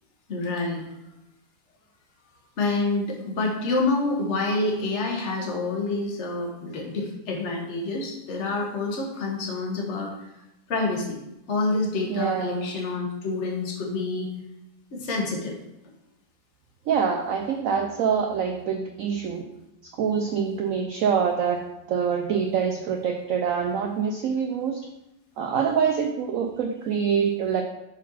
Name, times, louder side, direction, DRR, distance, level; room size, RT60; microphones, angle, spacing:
voice 1, 0.3-0.8 2.6-10.1 10.7-11.2 11.5-14.3 14.9-15.6, left 3 dB, 45° left, 1 dB, 1.2 m, -27 dB
voice 2, 12.1-12.7 16.9-19.5 20.0-24.8 25.4-27.6, right 6 dB, 80° right, 4 dB, 0.7 m, -25 dB
6.3 x 4.2 x 4.1 m, 0.89 s
omnidirectional pair, 1.9 m